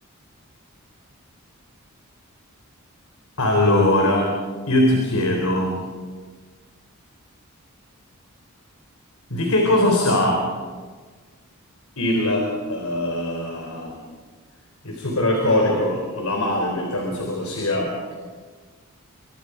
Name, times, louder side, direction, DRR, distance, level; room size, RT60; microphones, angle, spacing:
voice 1, 3.4-4.3 4.7-5.7 9.3-10.4 12.0-14.0 14.8-18.1, left 1 dB, 75° left, 1 dB, 3.8 m, -21 dB
27.5 x 25.5 x 5.0 m, 1.4 s
head